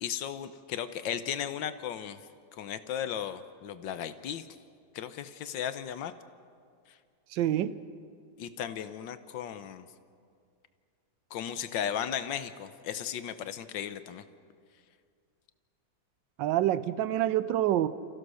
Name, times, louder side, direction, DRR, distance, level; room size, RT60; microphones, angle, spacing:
voice 1, 0.0-2.2 2.5-4.5 4.9-6.1 8.4-9.9 11.3-14.2, left 9 dB, 85° left, 11 dB, 1.5 m, -35 dB
voice 2, 7.3-7.8 16.4-17.9, right 12 dB, 80° right, 15 dB, 1.4 m, -27 dB
30.0 x 15.0 x 6.4 m, 2.2 s
omnidirectional pair, 2.0 m